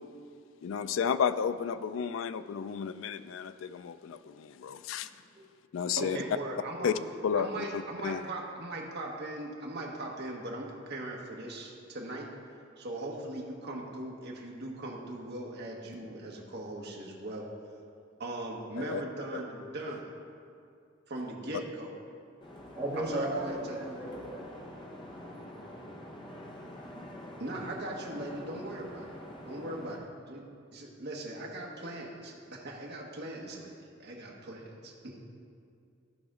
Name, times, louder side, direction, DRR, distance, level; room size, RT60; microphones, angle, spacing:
voice 1, 0.6-5.1 5.7-6.2 6.8-6.9 7.2-7.5 8.0-8.2 18.8-19.0 19.3-19.4, left 7 dB, 70° left, 13 dB, 0.3 m, -32 dB
voice 2, 6.0-6.9 7.3-12.3 12.8-17.5 18.2-20.1 21.1-22.0 23.0-23.8 27.4-29.1 29.4-35.2, right 1 dB, 55° right, -1 dB, 1.3 m, -39 dB
sound 1, 22.4-30.0, left 1 dB, 25° left, 0.8 m, -46 dB
voice 3, 22.7-24.4 25.1-25.6, right 1 dB, 10° right, -12 dB, 1.8 m, -36 dB
14.5 x 5.1 x 3.7 m, 2.4 s
head